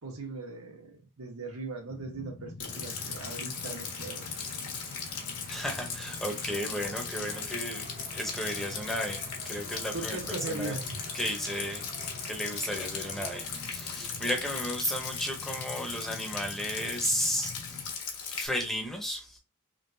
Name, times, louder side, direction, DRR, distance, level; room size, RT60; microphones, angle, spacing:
voice 1, 0.0-4.3 9.9-11.0, right 2 dB, 70° right, 1.3 m, -39 dB
sound 1, 1.9-17.9, left 4 dB, 35° left, 0.4 m, -47 dB
Rain, 2.6-18.5, left 6 dB, 70° left, 1.4 m, -38 dB
sound 2, 2.7-15.0, right 2 dB, 40° right, 0.7 m, -50 dB
voice 2, 5.5-7.8 8.1-10.8 11.1-19.4, equal, ahead, 0.8 m, -34 dB
3.7 x 3.5 x 2.7 m
head